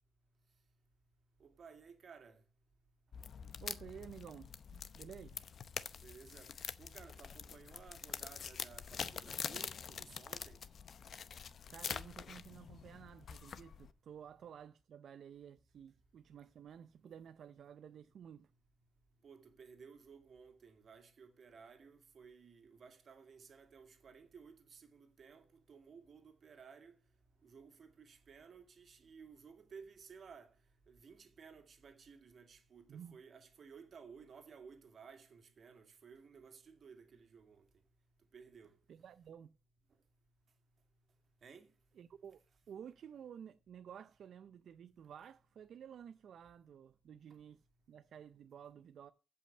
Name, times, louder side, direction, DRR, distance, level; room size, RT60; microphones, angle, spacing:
voice 1, 1.4-2.4 6.0-10.6 19.2-27.0 27.4-30.5 30.9-37.7 38.3-38.8 41.4-41.7, right 6 dB, 50° right, 2.2 m, -57 dB
sound 1, 3.1-13.9, left 7 dB, 50° left, 0.7 m, -45 dB
voice 2, 3.6-5.4 11.7-18.5 32.9-33.2 38.9-39.5 42.0-42.4 42.7-49.1, right 8 dB, 65° right, 0.5 m, -53 dB
15.5 x 5.6 x 6.6 m
wide cardioid pair, 150°, 0 cm